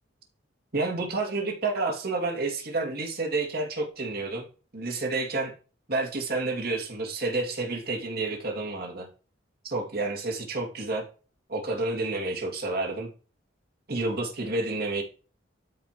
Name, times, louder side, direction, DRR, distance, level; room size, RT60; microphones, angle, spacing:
voice 1, 0.7-4.5 4.7-5.5 5.9-9.1 9.6-11.0 11.5-13.1 13.9-15.0, right 2 dB, 50° right, 0 dB, 2.4 m, -29 dB
13.0 x 4.9 x 3.0 m, 0.36 s
head